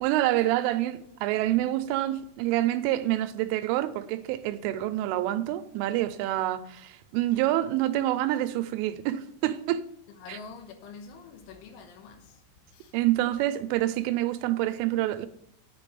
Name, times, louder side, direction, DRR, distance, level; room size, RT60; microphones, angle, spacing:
voice 1, 0.0-9.8 10.3-10.4 12.9-15.3, right 14 dB, 85° right, 3.1 m, -27 dB
voice 2, 10.2-13.0, left 5 dB, 80° left, 3.3 m, -46 dB
9.1 x 5.2 x 6.8 m
omnidirectional pair, 5.8 m